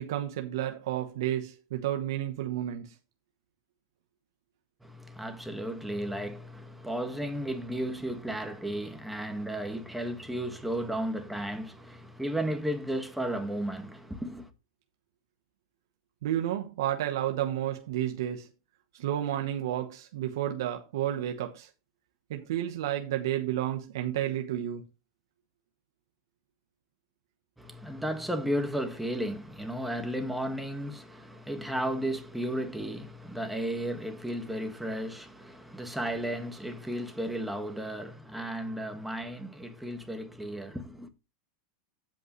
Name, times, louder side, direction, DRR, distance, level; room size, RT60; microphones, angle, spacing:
voice 1, 0.0-2.9 16.2-18.5 18.9-21.7 22.3-24.8, right 12 dB, 75° right, 1.1 m, -31 dB
voice 2, 4.8-14.5 27.6-41.1, right 1 dB, 5° right, 1.7 m, -34 dB
16.0 x 5.3 x 3.2 m
supercardioid pair, 125°, 2 cm